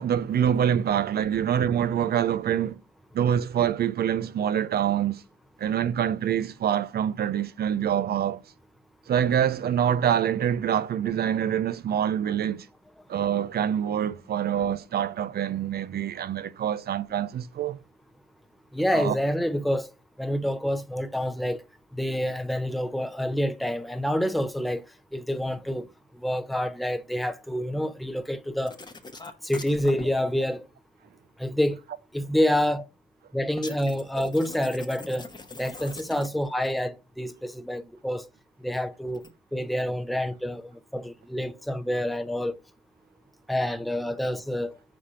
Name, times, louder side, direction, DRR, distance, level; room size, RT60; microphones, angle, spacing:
voice 1, 0.0-2.8 3.1-5.2 5.6-8.4 9.1-12.7 13.1-17.8 18.9-19.2, right 9 dB, 50° right, 0.5 m, -25 dB
voice 2, 18.7-19.9 20.2-21.6 21.9-24.8 25.1-25.9 26.1-28.8 29.4-30.7 31.4-31.8 32.1-32.8 33.3-35.3 35.6-38.3 38.6-39.2 39.5-42.6 43.5-44.8, equal, ahead, 0.6 m, -27 dB
sound 1, 28.7-30.1 33.6-36.5 39.1-39.3, left 3 dB, 20° left, 1.0 m, -41 dB
5.2 x 4.3 x 5.0 m
cardioid pair, 90°, 20 cm